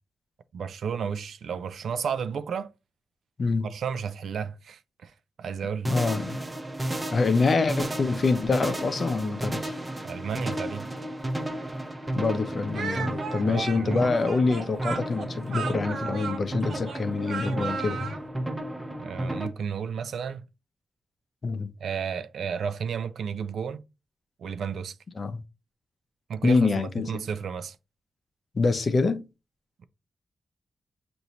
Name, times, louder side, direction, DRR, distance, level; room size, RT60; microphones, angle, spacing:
voice 1, 0.5-2.7 3.6-5.1 5.4-5.9 10.0-10.9 13.4-14.0 19.0-20.4 21.8-23.8 24.4-25.0 26.3-27.8, right 7 dB, 90° right, 0.4 m, -32 dB
sound 1, 5.8-19.5, right 1 dB, 15° right, 0.6 m, -33 dB
voice 2, 5.9-6.4 7.1-9.7 12.1-18.1 21.4-21.7 25.2-25.4 26.4-27.1 28.5-29.2, left 4 dB, 40° left, 0.6 m, -25 dB
Speech, 12.7-18.2, right 5 dB, 65° right, 0.8 m, -35 dB
6.8 x 2.6 x 3.0 m
wide cardioid pair, 160°, 0 cm